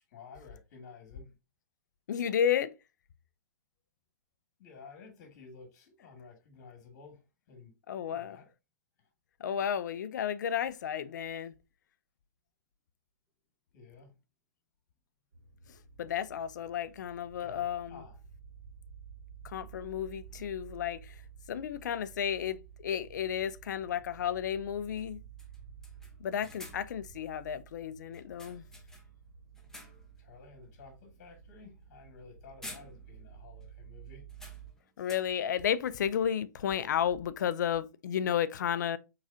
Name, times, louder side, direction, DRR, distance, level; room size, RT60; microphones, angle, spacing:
voice 1, 0.1-1.3 4.6-7.7 8.1-8.5 13.7-14.1 17.4-18.2 28.7-28.8 30.2-34.3, left 5 dB, 55° left, 2.0 m, -52 dB
voice 2, 2.1-2.7 7.9-8.4 9.4-11.5 15.7-18.0 19.4-21.2 21.5-25.2 26.2-28.7 35.0-39.0, left 9 dB, 70° left, 0.5 m, -32 dB
sound 1, 15.3-34.7, right 7 dB, 70° right, 2.2 m, -52 dB
sound 2, 21.8-21.9 23.9-24.1 24.4-24.5 25.0-25.1 25.4-27.0 28.1-29.2 29.5-30.2 30.6-30.8 32.1-32.3 32.6-33.4 33.6-33.7 34.3-35.5, left 1 dB, 5° left, 1.0 m, -51 dB
4.7 x 3.8 x 2.7 m
hypercardioid pair, 125°, 10 cm